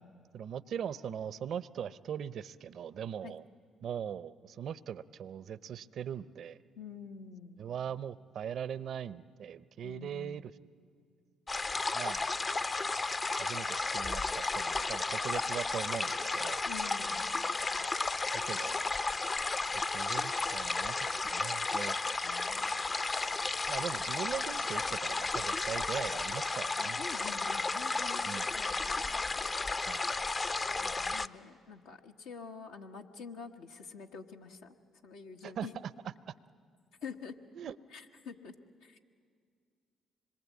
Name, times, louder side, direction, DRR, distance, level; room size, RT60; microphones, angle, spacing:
voice 1, 0.3-3.4 3.8-6.6 7.6-10.5 11.9-12.3 13.4-16.6 18.3-18.9 19.9-22.0 23.7-27.0 28.2-28.4 29.9-30.1 35.4-35.9 37.5-37.8, right 8 dB, 65° right, 17 dB, 0.6 m, -40 dB
voice 2, 6.7-7.7 9.8-10.4 16.7-17.3 22.2-22.6 27.0-29.5 30.8-34.8 35.0-35.7 37.0-37.4 37.9-38.5 38.8-39.0, left 5 dB, 85° left, 2 dB, 1.3 m, -47 dB
sound 1, 11.5-31.3, left 3 dB, 35° left, 0.6 m, -33 dB
25.5 x 22.0 x 8.4 m, 2.2 s
hypercardioid pair, 55°, 0 cm